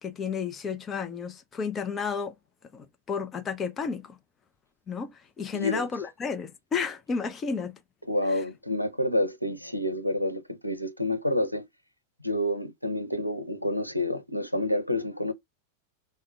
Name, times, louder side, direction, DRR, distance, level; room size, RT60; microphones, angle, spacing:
voice 1, 0.0-2.3 2.7-4.2 4.9-5.1 5.4-7.8, left 5 dB, 20° left, 0.6 m, -32 dB
voice 2, 5.5-5.9 8.1-11.7 12.2-15.3, left 1 dB, 90° right, 0.5 m, -28 dB
5.0 x 2.2 x 3.5 m
figure-of-eight pair, 90°, 0 cm